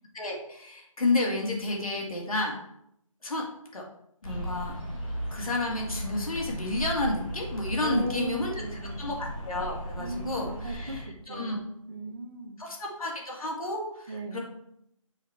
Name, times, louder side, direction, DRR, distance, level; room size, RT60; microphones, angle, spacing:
voice 1, 0.1-2.6 3.2-3.4 3.7-3.8 4.2-4.7 5.3-8.5 9.0-11.6 12.6-14.4, left 2 dB, 85° left, -1 dB, 2.2 m, -31 dB
sound 1, 4.2-11.0, right 1 dB, 15° left, 1.8 m, -36 dB
voice 2, 7.8-9.1 10.0-12.6 14.1-14.4, right 1 dB, 45° right, 2 dB, 0.9 m, -37 dB
8.8 x 3.4 x 4.5 m, 0.76 s
hypercardioid pair, 180°, 18 cm